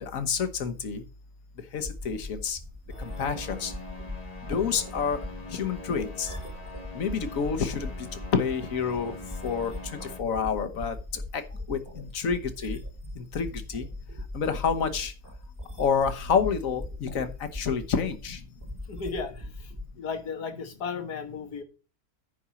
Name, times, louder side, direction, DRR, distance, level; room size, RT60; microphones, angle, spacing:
voice 1, 0.0-1.0 1.7-2.6 3.0-3.7 4.5-5.2 5.5-6.3 6.9-8.1 8.3-9.2 9.4-9.7 10.2-10.9 11.7-12.8 13.2-13.9 14.3-15.1 15.8-18.4, left 6 dB, 60° left, 9 dB, 1.5 m, -28 dB
sound 1, 1.8-19.8, left 1 dB, 10° right, 1.4 m, -40 dB
sound 2, 2.9-10.2, left 2 dB, 25° left, 1.2 m, -43 dB
voice 2, 18.9-21.6, left 5 dB, 90° left, 7 dB, 2.0 m, -35 dB
10.0 x 4.4 x 7.0 m, 0.34 s
omnidirectional pair, 1.6 m